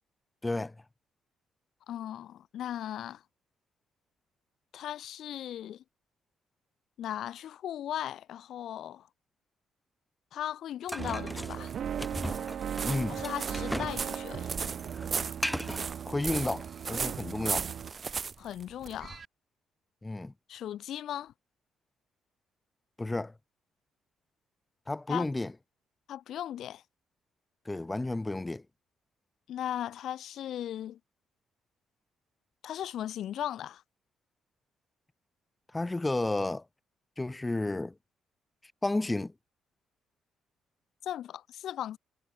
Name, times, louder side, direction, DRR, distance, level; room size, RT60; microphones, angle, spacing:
voice 1, 0.4-0.7 12.8-13.2 16.0-17.7 20.0-20.3 23.0-23.3 24.9-25.5 27.7-28.6 35.7-36.6 37.2-37.9 38.8-39.3, left 2 dB, 15° left, 2.3 m, -31 dB
voice 2, 1.9-3.2 4.7-5.8 7.0-9.1 10.3-11.7 13.1-14.5 18.4-19.2 20.5-21.3 25.1-25.3 26.1-26.8 29.5-31.0 32.6-33.8 41.0-42.0, left 11 dB, 70° left, 2.0 m, -37 dB
sound 1, 10.9-14.0 14.3-15.9, equal, ahead, 5.0 m, -37 dB
sound 2, 11.0-17.9, right 9 dB, 60° right, 4.8 m, -38 dB
sound 3, 11.1-19.3, right 5 dB, 40° right, 5.0 m, -37 dB
cardioid pair, 90°, 0 cm